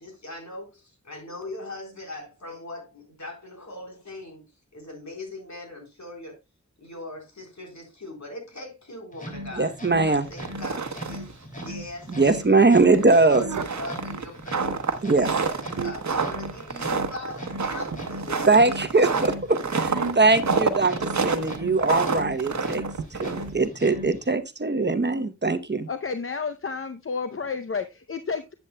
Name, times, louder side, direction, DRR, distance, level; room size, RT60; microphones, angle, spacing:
voice 1, 0.0-4.4 4.7-6.4 6.8-9.7 10.0-18.8 20.0-20.1, left 2 dB, 70° left, 3.9 m, -40 dB
sound 1, 9.1-24.4, left 1 dB, 25° left, 2.5 m, -39 dB
voice 2, 9.6-10.3 12.2-13.4 15.0-15.3 18.5-22.8 23.2-25.9, right 3 dB, 35° right, 0.9 m, -21 dB
sound 2, 10.3-11.3 11.6-11.7 12.1-12.2 12.9-23.7, right 4 dB, 70° right, 1.0 m, -28 dB
sound 3, 13.3-13.9 15.4-16.2 17.9-18.8 19.8-20.5 21.3-21.7 23.0-23.1, right 6 dB, 85° right, 0.7 m, -35 dB
voice 3, 25.9-28.5, left 5 dB, 45° left, 0.6 m, -31 dB
11.0 x 8.2 x 2.2 m
wide cardioid pair, 55°, 29 cm